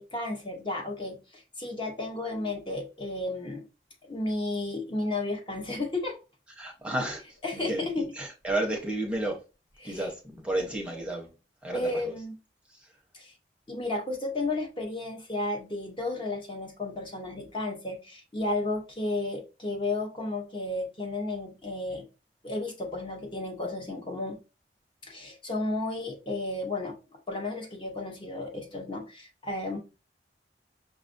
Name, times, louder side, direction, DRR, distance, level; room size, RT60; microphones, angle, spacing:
voice 1, 0.0-3.6 4.1-6.2 7.4-8.1 9.8-10.1 10.6-10.7 11.7-12.4 13.1-13.3 13.7-22.1 22.4-24.4 25.0-27.0 27.3-29.8, left 2 dB, 30° left, 0.8 m, -33 dB
voice 2, 6.6-7.2 7.5-9.4 9.8-11.3 11.6-12.1 12.7-12.8, right 1 dB, 5° right, 0.7 m, -32 dB
5.8 x 2.4 x 2.5 m
head